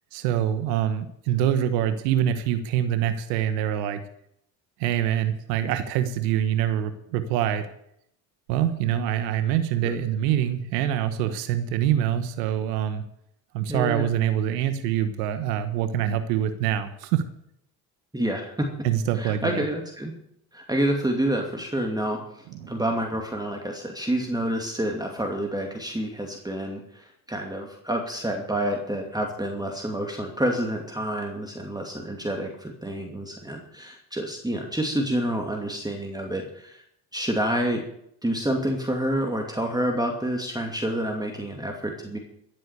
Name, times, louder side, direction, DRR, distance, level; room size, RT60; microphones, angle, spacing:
voice 1, 0.1-4.0 4.8-7.7 8.5-13.0 13.5-17.2 18.8-19.7 22.5-22.7, right 10 dB, 80° right, 10 dB, 1.3 m, -25 dB
voice 2, 13.7-14.0 18.1-18.7 19.1-20.1 20.5-36.8 37.1-37.8 38.2-42.2, right 1 dB, 10° right, 2 dB, 2.6 m, -28 dB
14.5 x 7.9 x 8.3 m, 0.74 s
hypercardioid pair, 70°, 48 cm